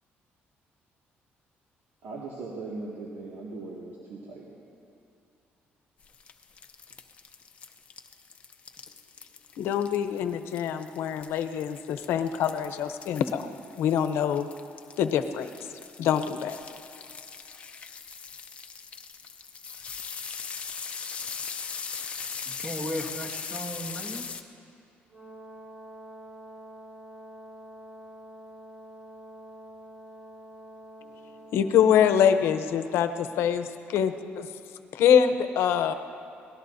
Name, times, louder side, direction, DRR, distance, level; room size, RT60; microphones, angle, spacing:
voice 1, 2.0-4.5, right 3 dB, 85° right, -3 dB, 2.0 m, -39 dB
sound 1, 6.0-24.4, left 6 dB, 30° left, 0.6 m, -40 dB
voice 2, 9.6-14.5 15.0-15.5 16.0-16.6 31.5-34.5 34.9-35.9, left 8 dB, 85° left, 9 dB, 0.8 m, -24 dB
voice 3, 22.6-24.3, equal, 10° right, 1 dB, 1.2 m, -35 dB
Brass instrument, 25.1-33.1, right 1 dB, 25° right, 4.4 m, -47 dB
23.5 x 18.5 x 2.7 m, 2.5 s
cardioid pair, 175°, 4 cm